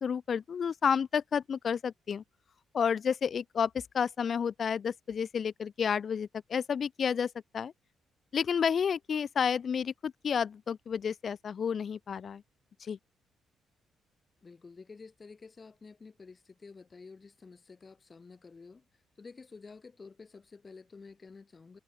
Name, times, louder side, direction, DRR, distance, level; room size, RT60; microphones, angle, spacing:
voice 1, 0.0-2.2 2.7-7.7 8.3-12.4 12.8-13.0, left 7 dB, 50° left, 0.9 m, -31 dB
voice 2, 14.4-21.8, left 4 dB, 30° left, 7.6 m, -51 dB
cardioid pair, 90°, 0 cm